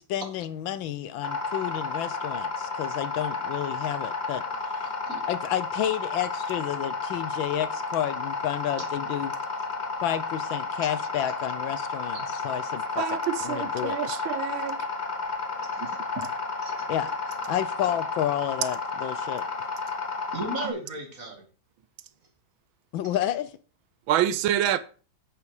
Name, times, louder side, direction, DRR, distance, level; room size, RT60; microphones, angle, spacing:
voice 1, 0.0-4.4 4.7-4.9 5.3-9.3 10.0-13.2 13.4-14.0 16.9-17.1 17.5-19.4 22.9-23.5, left 11 dB, 75° left, 1.4 m, -30 dB
sound 1, 1.2-20.7, left 4 dB, 30° left, 0.8 m, -32 dB
voice 2, 13.0-14.8 15.8-15.9 24.1-24.8, right 11 dB, 80° right, 1.4 m, -27 dB
voice 3, 15.6-16.0 16.6-16.8 20.3-21.5, right 2 dB, 40° right, 2.7 m, -36 dB
8.3 x 8.0 x 4.8 m
omnidirectional pair, 2.2 m